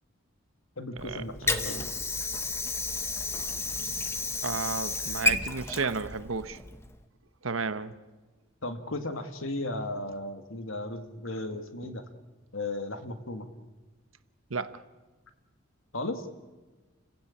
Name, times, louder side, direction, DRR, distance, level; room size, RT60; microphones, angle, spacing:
voice 1, 0.8-1.9 8.6-12.0 12.5-13.5 15.9-16.3, left 2 dB, 80° left, 7 dB, 2.1 m, -35 dB
Water / Sink (filling or washing), 1.0-7.0, left 2 dB, 15° left, 1.1 m, -32 dB
voice 2, 4.4-6.6 7.4-7.9 11.8-11.9 14.5-14.8, right 4 dB, 80° right, 13 dB, 1.1 m, -33 dB
30.0 x 16.0 x 8.7 m, 1.3 s
head